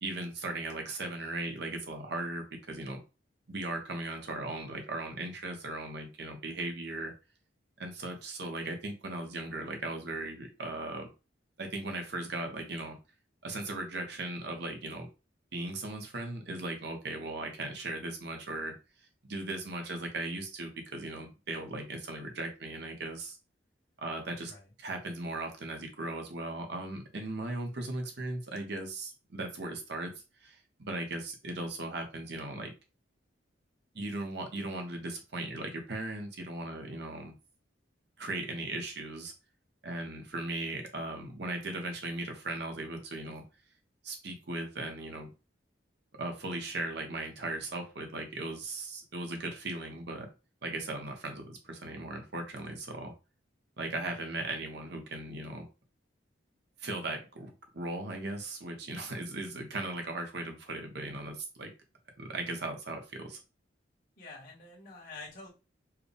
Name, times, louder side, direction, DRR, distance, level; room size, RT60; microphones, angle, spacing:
voice 1, 0.0-3.0 3.5-7.1 7.8-11.1 11.6-13.0 13.4-15.1 15.5-18.7 19.2-23.4 24.0-24.5 24.8-30.1 30.4-32.7 33.9-37.3 38.2-39.3 39.8-43.4 44.0-45.3 46.2-50.3 50.6-53.1 53.8-55.7 56.8-61.7 62.2-63.4, right 2 dB, 60° right, 3 dB, 1.1 m, -38 dB
voice 2, 54.1-54.4 64.2-65.5, left 3 dB, 50° left, -5 dB, 1.5 m, -48 dB
4.8 x 2.3 x 3.4 m, 0.30 s
head